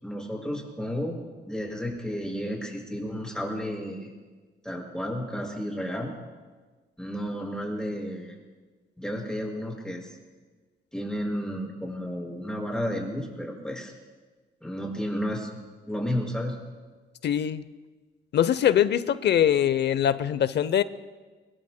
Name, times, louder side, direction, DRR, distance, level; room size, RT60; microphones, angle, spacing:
voice 1, 0.0-4.1 4.6-6.1 7.0-8.3 9.0-10.2 10.9-13.9 14.6-15.5 15.9-16.6, equal, 5° left, -1 dB, 5.4 m, -32 dB
voice 2, 17.2-17.6 18.3-20.8, left 10 dB, 60° left, 15 dB, 0.7 m, -22 dB
24.0 x 21.5 x 2.2 m, 1.4 s
cardioid pair, 90°, 20 cm